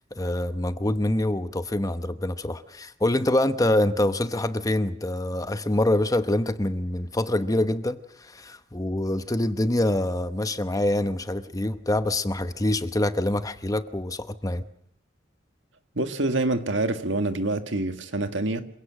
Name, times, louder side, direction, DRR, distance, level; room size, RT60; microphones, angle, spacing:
voice 1, 0.2-14.6, left 1 dB, 20° left, 0.9 m, -25 dB
voice 2, 15.9-18.6, right 2 dB, 85° right, 1.8 m, -26 dB
27.0 x 17.0 x 7.5 m
head